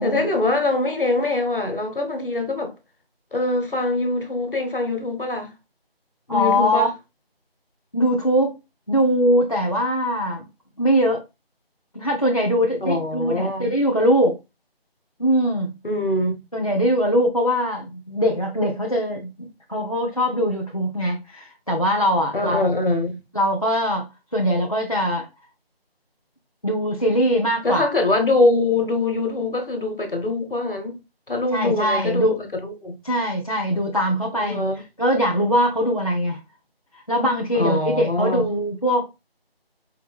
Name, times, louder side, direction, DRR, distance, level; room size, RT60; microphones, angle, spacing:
voice 1, 0.0-2.7 3.3-5.5 6.3-6.9 12.8-13.7 15.8-16.3 22.3-23.2 27.6-31.0 31.3-33.0 34.4-34.8 37.5-38.5, left 2 dB, 60° left, 1.2 m, -23 dB
voice 2, 6.3-6.9 7.9-8.6 8.9-10.4 10.8-11.2 11.9-14.4 15.2-15.7 16.5-22.7 23.3-24.1 24.3-25.3 26.6-27.9 31.5-32.4 33.0-34.7 35.0-36.4 36.9-39.1, equal, 35° left, 0.5 m, -21 dB
4.7 x 2.6 x 3.4 m
figure-of-eight pair, 175°, 31 cm